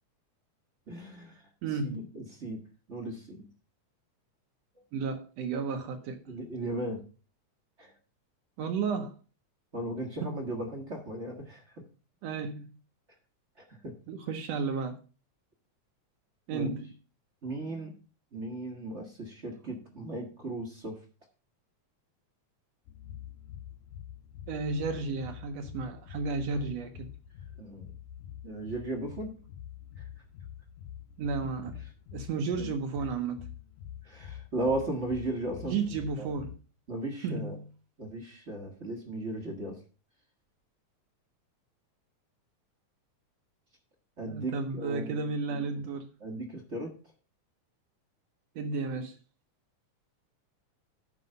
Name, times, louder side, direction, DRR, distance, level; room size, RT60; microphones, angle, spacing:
voice 1, 0.9-1.4 1.8-2.6 2.9-3.5 6.3-7.0 7.8-7.9 9.7-11.8 13.6-13.9 16.5-16.8 17.4-17.9 18.3-21.0 27.6-27.9 28.4-29.3 30.0-30.1 32.6-32.7 34.0-35.7 36.2-36.3 36.9-37.6 38.0-39.8 44.2-45.8 46.2-46.9, right 1 dB, 40° right, 0.9 m, -36 dB
voice 2, 1.6-2.1 4.9-6.2 8.6-9.1 10.2-10.3 12.2-12.7 14.1-15.0 16.5-16.9 24.5-27.1 31.2-31.8 32.1-33.4 35.7-36.5 37.2-37.7 44.3-46.1 48.6-49.1, right 4 dB, 70° right, 1.8 m, -33 dB
sound 1, 22.9-36.6, left 10 dB, 85° left, 2.1 m, -46 dB
11.0 x 4.8 x 5.4 m
omnidirectional pair, 3.4 m